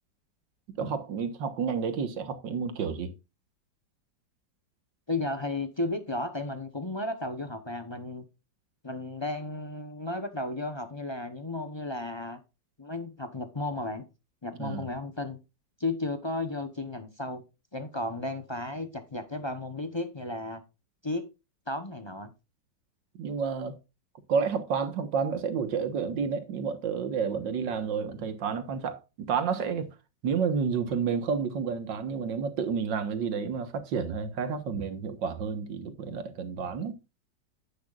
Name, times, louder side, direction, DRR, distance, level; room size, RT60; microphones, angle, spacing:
voice 1, 0.8-3.1 14.6-14.9 23.2-23.7 24.3-29.9 30.2-37.0, right 6 dB, 80° right, 1.9 m, -30 dB
voice 2, 5.1-8.2 8.8-12.4 12.8-14.0 14.4-15.4 15.8-17.4 17.7-20.6 21.0-21.2 21.7-22.3, left 2 dB, 30° left, 0.4 m, -34 dB
10.5 x 9.4 x 2.4 m
omnidirectional pair, 2.0 m